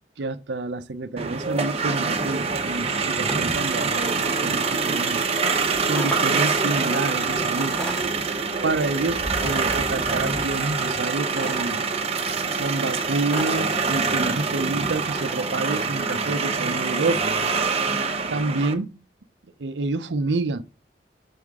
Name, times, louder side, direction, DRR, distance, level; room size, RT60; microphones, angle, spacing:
voice 1, 0.2-5.2 5.9-7.8 8.6-11.8 12.6-17.2 18.3-19.0 19.6-20.6, right 3 dB, 85° right, 0.6 m, -28 dB
sound 1, 1.2-18.7, right 4 dB, 35° right, 0.9 m, -25 dB
sound 2, 2.5-16.3, equal, 5° left, 1.3 m, -39 dB
6.4 x 4.6 x 3.6 m
head